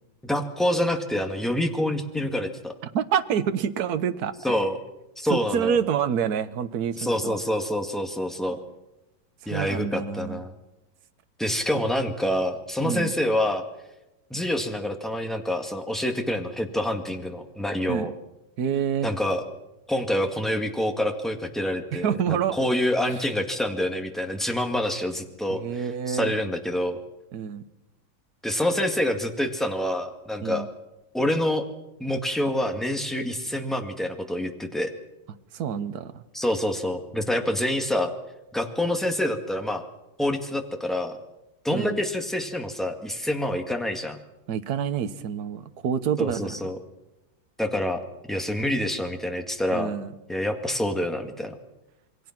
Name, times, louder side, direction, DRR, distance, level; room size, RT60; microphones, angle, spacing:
voice 1, 0.2-2.7 4.4-4.8 5.2-5.8 7.0-8.6 9.5-10.5 11.4-13.6 14.3-18.1 19.0-19.4 19.9-27.0 28.4-30.7 31.1-31.7 32.0-34.9 36.3-38.1 38.5-39.8 40.2-41.2 41.6-44.2 46.2-46.8 47.6-48.0 48.3-49.9 50.3-51.5, left 1 dB, ahead, 4 dB, 1.7 m, -27 dB
voice 2, 2.9-4.6 5.3-7.4 9.4-10.4 12.8-13.1 17.9-18.1 18.6-19.1 21.9-22.5 25.5-26.3 27.3-27.6 30.4-30.7 35.5-36.2 41.7-42.0 44.5-46.7 49.7-50.1, right 8 dB, 55° right, 11 dB, 1.4 m, -27 dB
28.0 x 22.0 x 6.0 m, 0.97 s
omnidirectional pair, 2.3 m